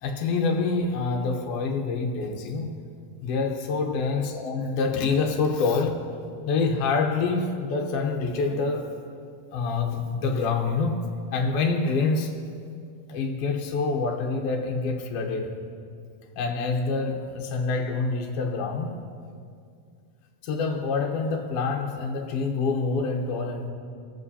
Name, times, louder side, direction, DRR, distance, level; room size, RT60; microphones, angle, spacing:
voice 1, 0.0-2.7 3.2-6.1 6.5-8.9 9.5-11.0 11.3-12.3 13.1-15.5 16.3-18.9 20.4-23.7, left 4 dB, 65° left, 1 dB, 1.6 m, -26 dB
23.0 x 7.7 x 2.8 m, 2.3 s
omnidirectional pair, 3.7 m